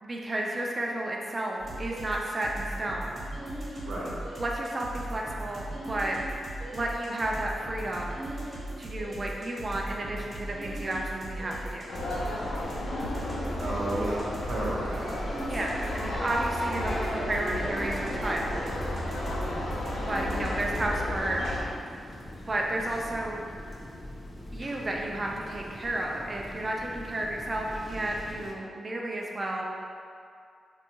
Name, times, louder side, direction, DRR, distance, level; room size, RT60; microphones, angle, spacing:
voice 1, 0.0-3.2 4.4-6.2 6.7-8.2 8.8-11.9 15.5-18.6 20.1-21.4 22.5-23.4 24.5-29.6, right 1 dB, 35° right, -1 dB, 0.3 m, -32 dB
sound 1, 1.6-21.0, right 1 dB, 50° right, 0.9 m, -38 dB
sound 2, 11.9-21.6, left 1 dB, 80° left, 0.5 m, -33 dB
voice 2, 13.6-15.5, right 1 dB, 75° right, -6 dB, 0.7 m, -33 dB
sound 3, 17.7-28.5, left 1 dB, 30° left, 0.5 m, -43 dB
3.4 x 2.2 x 2.9 m, 2.3 s
cardioid pair, 90°, 0 cm